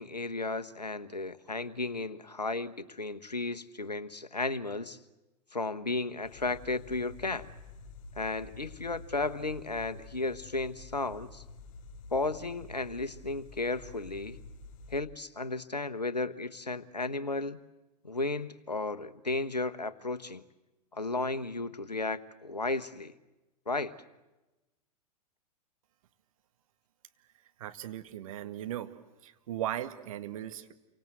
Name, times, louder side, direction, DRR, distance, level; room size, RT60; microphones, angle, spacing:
voice 1, 0.0-5.0 5.5-7.5 8.2-11.4 12.1-14.4 14.9-17.6 18.0-20.4 20.9-23.1 23.7-23.9, left 3 dB, 85° left, 12 dB, 1.2 m, -34 dB
sound 1, 6.2-15.0, left 3 dB, 50° left, 5.2 m, -49 dB
voice 2, 27.6-28.9 29.2-30.7, right 12 dB, 55° right, 8 dB, 1.8 m, -37 dB
29.0 x 24.5 x 7.9 m, 1.1 s
figure-of-eight pair, 95°, 20 cm